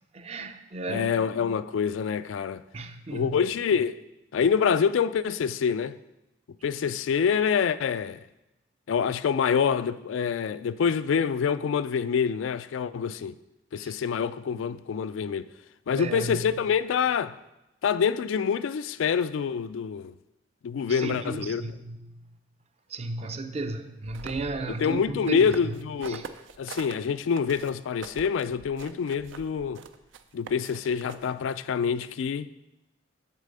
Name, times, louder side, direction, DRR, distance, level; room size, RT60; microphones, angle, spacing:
voice 1, 0.1-1.1 2.7-3.4 13.8-13.9 16.0-16.5 20.9-22.2 22.9-25.5 26.1-26.2, right 2 dB, 35° right, 0.5 m, -34 dB
voice 2, 0.9-2.6 3.1-4.0 4.3-5.9 6.6-8.2 8.9-13.4 13.7-15.5 15.9-17.4 17.8-20.1 20.6-21.6 24.7-26.2 26.6-29.8 30.3-32.5, left 6 dB, 85° left, 0.3 m, -26 dB
sound 1, 24.0-26.9 27.3-31.5, right 5 dB, 80° right, 0.5 m, -44 dB
8.3 x 4.1 x 6.7 m
head